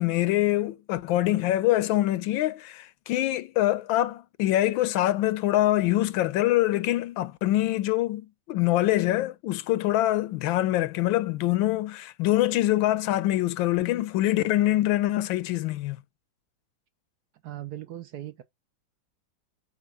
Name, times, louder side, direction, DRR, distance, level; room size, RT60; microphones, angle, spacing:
voice 1, 0.0-16.0, left 15 dB, 85° left, 1.4 m, -24 dB
voice 2, 17.4-18.4, right 13 dB, 65° right, 1.1 m, -38 dB
7.0 x 2.5 x 5.3 m
omnidirectional pair, 2.1 m